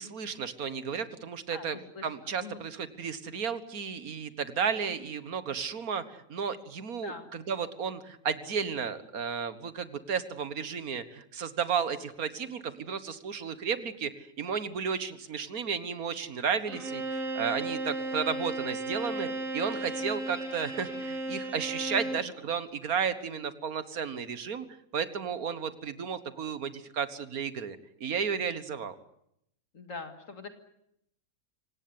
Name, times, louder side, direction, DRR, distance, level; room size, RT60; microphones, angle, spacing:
voice 1, 0.0-19.3 19.5-24.7 24.9-29.0, right 6 dB, 90° right, 13 dB, 1.9 m, -33 dB
voice 2, 1.5-2.1 2.4-2.6 7.0-7.3 19.1-19.4 29.7-30.5, left 4 dB, 65° left, 7 dB, 2.4 m, -43 dB
Bowed string instrument, 16.7-22.3, right 2 dB, 65° right, 3.9 m, -35 dB
25.5 x 18.0 x 9.7 m, 0.77 s
omnidirectional pair, 1.5 m